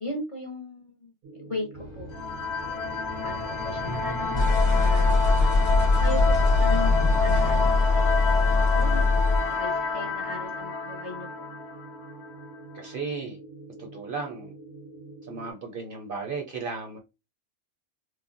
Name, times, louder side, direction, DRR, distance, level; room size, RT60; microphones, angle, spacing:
voice 1, 0.0-1.7 1.9-2.4 3.2-4.5 4.8-11.5, left 1 dB, 40° left, 0.5 m, -38 dB
sound 1, 1.2-15.5, right 2 dB, 85° right, 1.1 m, -45 dB
sound 2, 1.7-9.6, left 3 dB, 25° left, 0.8 m, -23 dB
sound 3, 2.1-12.5, left 3 dB, 65° left, 0.8 m, -29 dB
voice 2, 12.7-13.4 13.8-14.5 15.3-17.0, right 4 dB, 55° right, 0.6 m, -35 dB
3.2 x 2.0 x 2.4 m
omnidirectional pair, 1.3 m